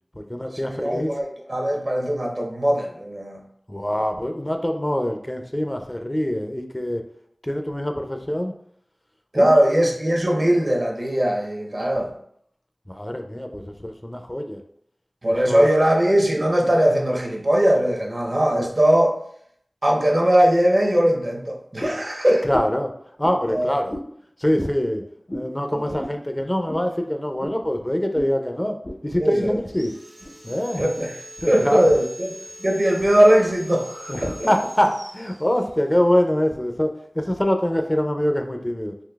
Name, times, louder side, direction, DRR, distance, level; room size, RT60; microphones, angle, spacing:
voice 1, 0.1-1.1 3.7-7.0 7.4-8.5 9.3-9.5 11.8-11.9 12.9-14.6 15.3-15.7 22.4-22.9 23.2-24.0 24.4-25.0 25.3-28.8 29.0-29.9 30.4-30.8 31.4-31.9 34.1-38.9, left 1 dB, 20° left, 5 dB, 0.4 m, -24 dB
voice 2, 0.7-3.4 9.3-12.1 15.2-19.2 19.8-22.5 23.5-23.7 25.7-25.9 29.2-29.6 30.8-32.3 32.6-34.5, right 1 dB, 50° right, 1 dB, 0.7 m, -20 dB
sound 1, 21.8-22.1 22.5-22.8 23.2-23.4 23.9-24.1 24.5-24.7 25.3-25.5 26.0-26.2 26.7-26.8 27.4-27.6 28.1-28.3 28.8-29.0 29.3-29.7 30.2-30.3 30.9-31.1, equal, 60° left, 0.7 m, -33 dB
Sawing, 29.6-36.1, equal, 70° right, 1.0 m, -43 dB
3.8 x 2.7 x 2.3 m, 0.68 s
wide cardioid pair, 45°, 0 cm